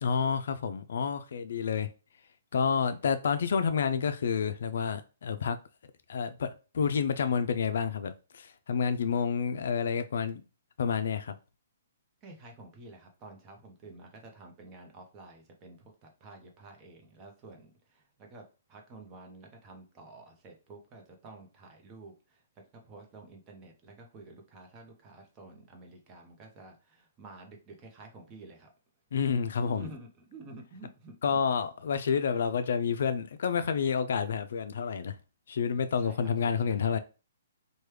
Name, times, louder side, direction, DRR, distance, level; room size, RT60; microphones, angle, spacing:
voice 1, 0.0-1.9 2.5-5.6 6.1-10.4 10.8-11.4 29.1-29.9 31.2-35.2 35.5-37.0, left 6 dB, 70° left, 0.3 m, -29 dB
voice 2, 12.2-22.4 22.7-28.7 29.6-31.4 35.7-36.9, right 2 dB, 20° right, 0.7 m, -50 dB
3.1 x 2.2 x 3.2 m
hypercardioid pair, 155°, 0 cm